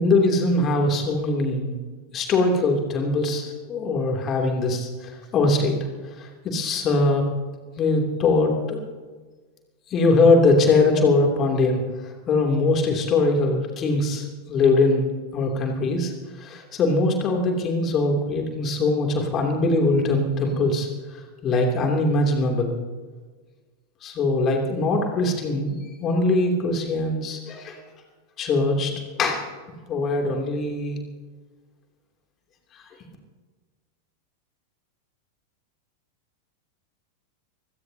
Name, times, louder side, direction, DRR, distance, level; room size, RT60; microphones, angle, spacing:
voice 1, 0.0-1.7 2.1-5.8 6.2-7.3 7.8-8.8 9.9-11.8 12.3-16.1 16.4-20.9 21.4-22.7 24.0-27.8 28.4-29.5 29.9-31.0, left 2 dB, 30° left, 2 dB, 3.1 m, -22 dB
25.5 x 16.5 x 2.9 m, 1.4 s
figure-of-eight pair, 90°, 0 cm